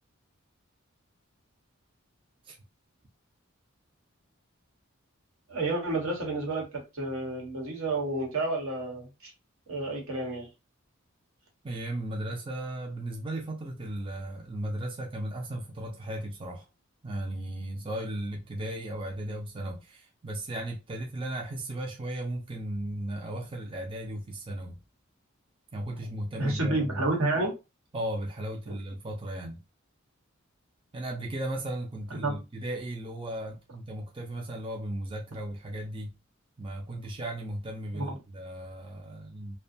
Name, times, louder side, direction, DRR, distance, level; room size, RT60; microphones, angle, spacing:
voice 1, 5.5-6.7 6.9-9.3 9.7-10.5 26.4-27.5 28.7-28.8 32.2-32.4 37.9-38.2, right 2 dB, 85° right, 1.2 m, -30 dB
voice 2, 11.6-16.7 17.0-24.8 25.7-27.1 27.9-29.6 30.9-36.1 36.6-39.6, right 1 dB, 25° right, 0.4 m, -36 dB
2.5 x 2.2 x 2.6 m
head